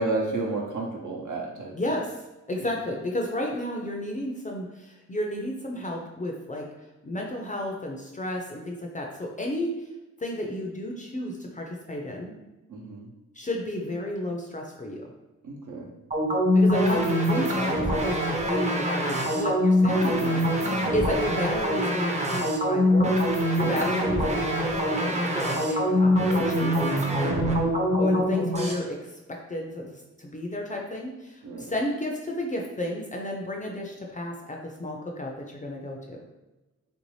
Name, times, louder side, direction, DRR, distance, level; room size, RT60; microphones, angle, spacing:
voice 1, 0.0-1.8 2.6-2.7 12.7-13.1 15.4-15.9 20.6-21.0 23.6-23.8 27.1-27.6 31.4-31.7, right 3 dB, 80° right, -1 dB, 0.8 m, -32 dB
voice 2, 1.7-2.2 2.5-6.7 7.0-9.9 10.2-12.3 13.3-15.1 16.5-26.8 28.0-36.3, left 1 dB, 25° left, 0 dB, 0.4 m, -32 dB
sound 1, 16.1-28.7, equal, 25° right, 0.5 m, -24 dB
3.4 x 2.6 x 3.1 m, 1.0 s
wide cardioid pair, 155°, 30 cm